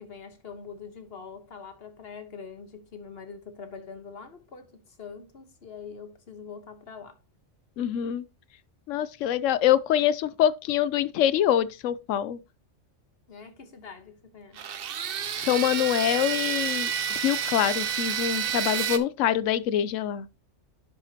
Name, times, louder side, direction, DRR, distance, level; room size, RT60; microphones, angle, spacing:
voice 1, 0.0-7.2 13.3-14.6, left 5 dB, 55° left, 1.3 m, -44 dB
voice 2, 7.8-8.2 8.9-12.4 15.4-20.3, left 11 dB, 85° left, 0.9 m, -25 dB
sound 1, 14.6-19.0, right 8 dB, 55° right, 0.8 m, -29 dB
10.5 x 5.8 x 2.8 m
omnidirectional pair, 1.3 m